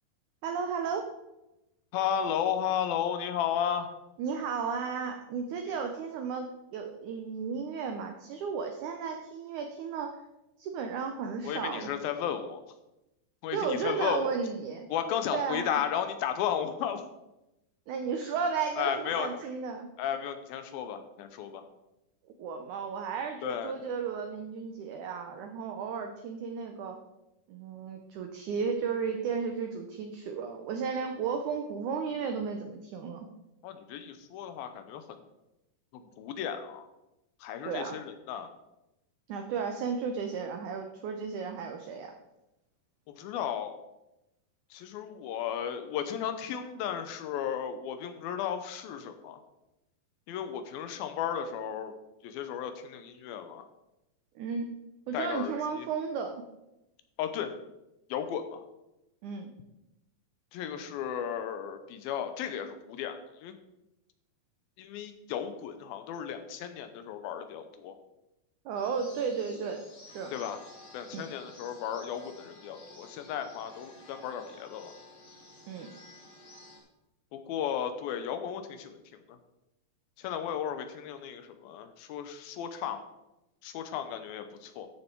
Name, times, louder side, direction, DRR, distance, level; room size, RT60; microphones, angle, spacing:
voice 1, 0.4-1.1 4.2-10.2 10.6-11.9 13.5-14.9 15.3-15.7 17.9-19.9 22.4-27.0 27.5-33.3 37.6-38.0 39.3-42.1 54.4-54.7 55.1-56.4 59.2-59.5 68.7-69.9 70.1-70.3 71.1-71.3 75.7-75.9, right 5 dB, 75° right, 4 dB, 1.9 m, -34 dB
voice 2, 1.9-3.9 5.7-5.9 11.4-12.6 13.4-14.3 14.9-17.0 18.8-19.3 20.0-21.7 23.4-23.7 33.6-35.2 35.9-36.9 37.4-38.5 43.1-43.8 44.7-49.4 50.3-51.9 52.2-53.7 55.1-55.9 57.2-57.6 58.1-58.6 60.5-63.6 64.8-68.0 70.3-70.6 70.9-74.9 77.3-79.4 80.2-83.0 83.6-84.9, left 9 dB, 80° left, 8 dB, 2.5 m, -34 dB
sound 1, 68.7-76.8, left 2 dB, 30° left, 2.8 m, -53 dB
13.5 x 6.5 x 4.5 m, 0.93 s
omnidirectional pair, 4.3 m